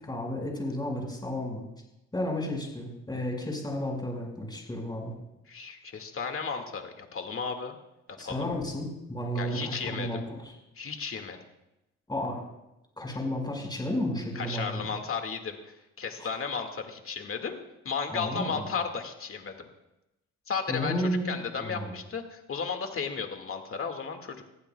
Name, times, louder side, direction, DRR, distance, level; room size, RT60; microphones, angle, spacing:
voice 1, 0.1-1.6 2.1-5.2 8.2-10.5 12.1-12.4 13.0-14.8 16.2-16.3 18.1-18.7 20.7-21.9, left 1 dB, 15° left, 0 dB, 5.3 m, -32 dB
voice 2, 5.5-7.7 8.2-8.5 9.4-10.2 10.8-11.4 14.4-17.6 17.8-19.6 20.5-24.4, left 5 dB, 45° left, 5 dB, 2.0 m, -34 dB
21.0 x 15.0 x 2.3 m, 0.93 s
cardioid pair, 90°, 30 cm